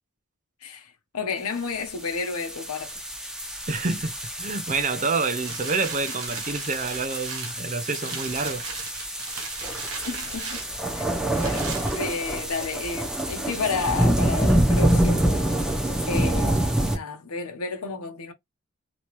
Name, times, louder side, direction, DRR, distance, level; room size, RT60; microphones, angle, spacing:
voice 1, 0.6-3.0 10.0-10.6 10.9-18.3, left 4 dB, 90° left, 0.9 m, -32 dB
sound 1, 1.8-17.0, right 1 dB, 5° right, 0.8 m, -26 dB
voice 2, 3.7-8.6, right 4 dB, 35° right, 0.7 m, -28 dB
sound 2, 5.4-12.6 13.1-13.2, right 5 dB, 70° right, 1.0 m, -38 dB
3.2 x 3.0 x 3.1 m
head